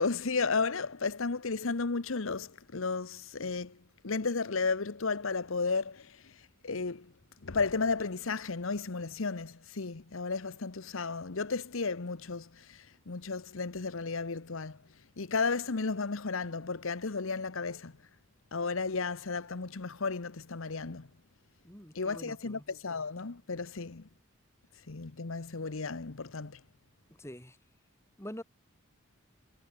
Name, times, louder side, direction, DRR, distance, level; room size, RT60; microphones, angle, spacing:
voice 1, 0.0-3.8 4.0-7.1 7.4-14.8 15.2-17.9 18.5-21.1 21.9-24.1 24.9-26.6, left 4 dB, 75° left, 1.0 m, -33 dB
voice 2, 21.6-22.6 27.2-27.6 28.2-28.4, equal, 10° left, 3.8 m, -45 dB
head